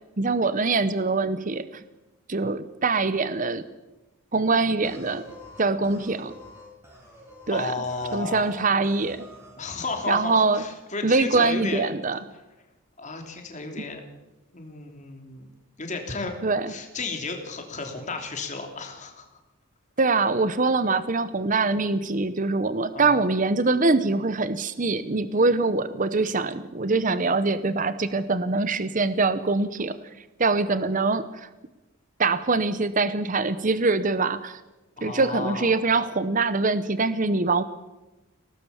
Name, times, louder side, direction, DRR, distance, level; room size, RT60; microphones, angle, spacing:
voice 1, 0.2-1.8 2.3-3.6 4.3-5.3 5.6-6.3 7.5-7.7 8.1-9.2 10.1-10.6 11.0-12.2 16.4-16.7 20.0-30.0 30.4-31.5 32.2-34.6 35.0-37.6, right 3 dB, 40° right, 14 dB, 0.8 m, -23 dB
sound 1, 4.8-8.6 8.8-9.6 9.8-10.6, equal, 10° right, 6.7 m, -47 dB
voice 2, 7.5-8.4 9.6-11.8 13.0-14.0 14.5-15.5 15.8-16.3 16.7-19.3 22.9-23.2 35.0-35.7, left 3 dB, 35° left, 4 dB, 3.2 m, -33 dB
23.5 x 18.0 x 7.1 m, 1.1 s
head